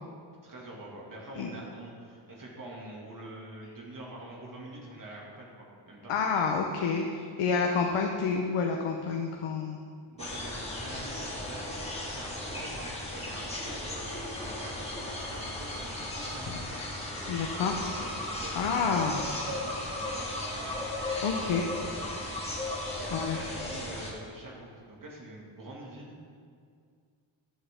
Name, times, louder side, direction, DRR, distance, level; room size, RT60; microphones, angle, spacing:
voice 1, 0.4-6.1 10.0-18.6 19.3-20.9 21.1-22.3 22.6-26.2, right 1 dB, 40° right, -3 dB, 2.4 m, -45 dB
voice 2, 6.1-9.8 17.3-17.7 18.6-19.3 21.2-21.6 23.1-23.4, left 5 dB, 75° left, 1 dB, 1.0 m, -29 dB
sound 1, 10.2-24.1, left 1 dB, 10° left, 1.9 m, -36 dB
13.0 x 7.7 x 3.7 m, 2.2 s
cardioid pair, 125°, 50 cm